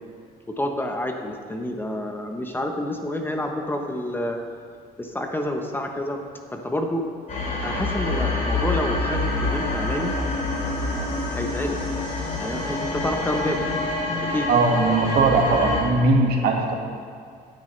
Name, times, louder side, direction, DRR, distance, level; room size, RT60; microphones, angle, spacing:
voice 1, 0.5-4.4 5.0-6.2 6.5-7.1 7.6-10.1 11.3-11.8 12.4-13.6 14.3-14.5, left 1 dB, 10° left, 3 dB, 1.0 m, -28 dB
sound 1, 7.3-15.8, left 2 dB, 50° left, 3.2 m, -26 dB
voice 2, 14.5-16.7, right 3 dB, 70° right, 0 dB, 1.9 m, -19 dB
15.5 x 9.5 x 3.3 m, 2.2 s
cardioid pair, 110°, 17 cm